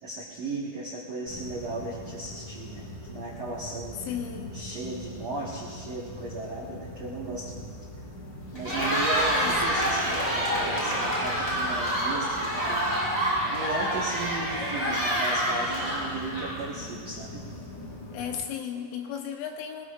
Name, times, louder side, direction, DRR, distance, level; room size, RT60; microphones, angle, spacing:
voice 1, 0.0-4.0 4.5-7.8 8.5-12.8 13.5-17.4, right 3 dB, 65° right, -7 dB, 1.6 m, -36 dB
sound 1, 1.3-18.4, left 1 dB, 50° left, 4.5 m, -42 dB
voice 2, 4.1-4.6 9.3-9.6 18.1-19.9, left 8 dB, 75° left, 3 dB, 3.3 m, -34 dB
Cheering, 8.5-16.8, equal, 10° left, 4.8 m, -27 dB
23.5 x 20.0 x 2.6 m, 2.1 s
omnidirectional pair, 5.9 m